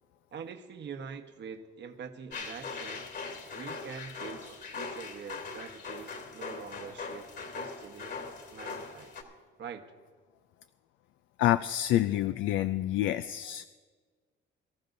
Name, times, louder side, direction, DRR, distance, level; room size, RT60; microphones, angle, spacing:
voice 1, 0.3-3.1 3.5-9.1 9.6-9.9, right 6 dB, 65° right, 5 dB, 1.2 m, -44 dB
sound 1, 2.3-9.2, left 4 dB, 60° left, 3.0 m, -41 dB
voice 2, 11.4-13.7, left 13 dB, 90° left, 13 dB, 0.4 m, -27 dB
23.5 x 14.0 x 2.7 m, 1.5 s
cardioid pair, 90°, 20 cm